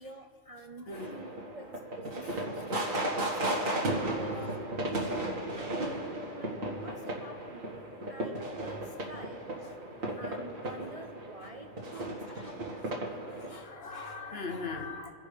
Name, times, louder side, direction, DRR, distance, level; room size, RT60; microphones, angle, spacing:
voice 1, 0.0-2.7 3.7-4.7 5.5-7.8 8.1-9.8 10.2-12.9, right 2 dB, 35° right, 3 dB, 0.6 m, -47 dB
voice 2, 0.9-1.2 2.2-2.4 2.8-2.9 3.6-3.9 11.9-12.5 13.3-15.1, left 4 dB, 50° left, 4 dB, 1.2 m, -41 dB
sound 1, 0.9-13.6, right 1 dB, 75° right, 2.2 m, -35 dB
28.5 x 11.0 x 3.5 m, 2.8 s
omnidirectional pair, 1.4 m